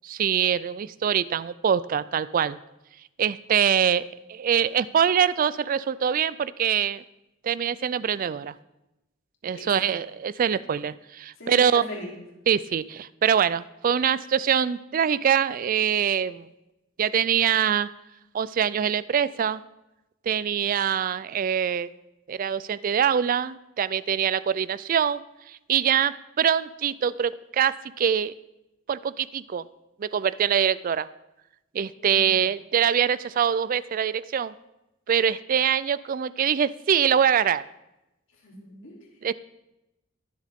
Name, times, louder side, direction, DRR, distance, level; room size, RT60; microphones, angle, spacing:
voice 1, 0.0-2.6 3.2-7.0 7.4-8.5 9.4-11.8 12.5-16.5 17.0-17.9 18.3-19.6 20.3-21.9 22.3-25.2 25.5-28.3 28.9-29.6 30.0-31.1 31.7-34.5 35.1-37.6 39.2-39.3, right 8 dB, 45° right, 17 dB, 0.3 m, -24 dB
voice 2, 9.5-10.0 11.4-12.2 32.0-32.4 38.3-39.1, left 1 dB, 75° left, -2 dB, 3.3 m, -40 dB
21.5 x 7.5 x 3.6 m, 0.93 s
head